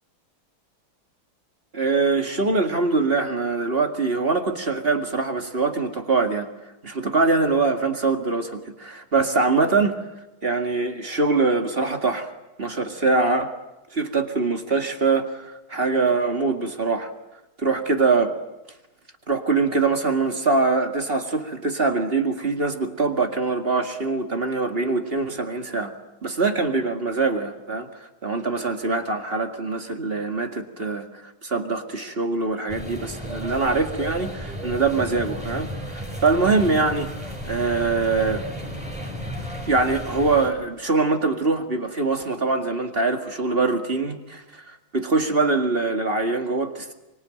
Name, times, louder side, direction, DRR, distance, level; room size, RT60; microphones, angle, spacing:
voice 1, 1.7-6.5 6.8-10.0 10.4-12.3 12.6-13.6 13.9-17.1 17.6-18.4 19.3-25.9 26.2-37.1 37.4-38.5 39.7-46.9, right 3 dB, 30° right, 5 dB, 2.0 m, -23 dB
sound 1, 32.7-40.5, equal, 5° right, 5.7 m, -34 dB
25.0 x 25.0 x 9.1 m, 0.99 s
omnidirectional pair, 2.2 m